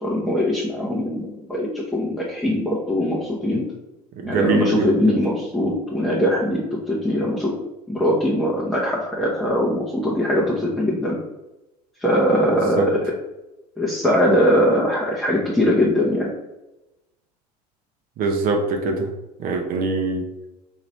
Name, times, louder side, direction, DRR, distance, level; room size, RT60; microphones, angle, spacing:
voice 1, 0.0-3.6 4.2-7.5 7.9-11.2 12.0-12.9 13.8-16.3, equal, ahead, -6 dB, 0.9 m, -21 dB
voice 2, 4.2-5.0 12.8-12.9 18.2-19.1 19.4-20.3, right 3 dB, 45° right, 3 dB, 0.8 m, -23 dB
3.0 x 2.8 x 4.4 m, 0.98 s
hypercardioid pair, 75°, 21 cm